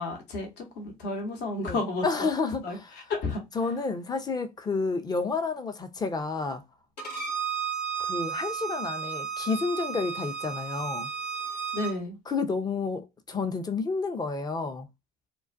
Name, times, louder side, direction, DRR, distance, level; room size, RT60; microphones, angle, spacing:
voice 1, 0.0-2.3 2.6-2.8 3.1-3.4 11.7-12.2, left 2 dB, 60° left, 0.9 m, -32 dB
voice 2, 1.6-2.9 3.5-6.6 8.0-11.1 12.3-14.9, left 4 dB, 20° left, 0.5 m, -30 dB
Bowed string instrument, 7.0-11.9, right 7 dB, 90° left, 0.7 m, -33 dB
2.2 x 2.2 x 2.5 m
hypercardioid pair, 65°, 20 cm